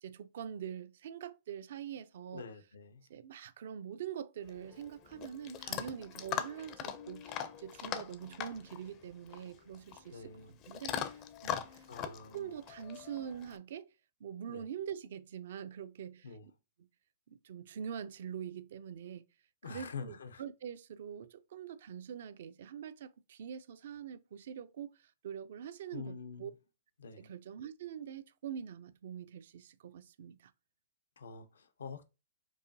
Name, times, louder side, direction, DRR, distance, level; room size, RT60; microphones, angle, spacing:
voice 1, 0.0-2.5 3.1-10.3 10.7-13.9 14.2-16.3 16.8-16.9 17.3-19.2 19.7-26.5 27.2-30.5, right 8 dB, 65° right, 0.4 m, -44 dB
voice 2, 2.3-3.0 10.1-10.6 11.9-12.5 14.5-14.6 16.2-16.5 19.6-20.4 25.9-26.5 27.0-27.3 31.2-32.0, left 5 dB, 80° left, 0.6 m, -46 dB
Chewing mastication / Dog, 4.4-13.6, left 9 dB, 35° left, 0.5 m, -42 dB
4.7 x 2.5 x 2.6 m
hypercardioid pair, 120°, 0 cm